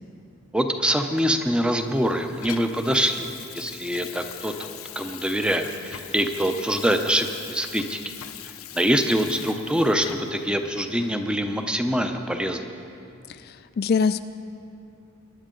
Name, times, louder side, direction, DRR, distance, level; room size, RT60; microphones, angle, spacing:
voice 1, 0.5-8.0 8.7-12.7, equal, 5° right, 6 dB, 0.6 m, -24 dB
Water tap faucet / Sink (filling or washing), 1.2-10.5 11.0-11.1, left 10 dB, 75° left, 0.7 m, -42 dB
voice 2, 13.3-14.3, left 5 dB, 45° left, 11 dB, 0.3 m, -24 dB
22.5 x 10.5 x 3.8 m, 2.7 s
head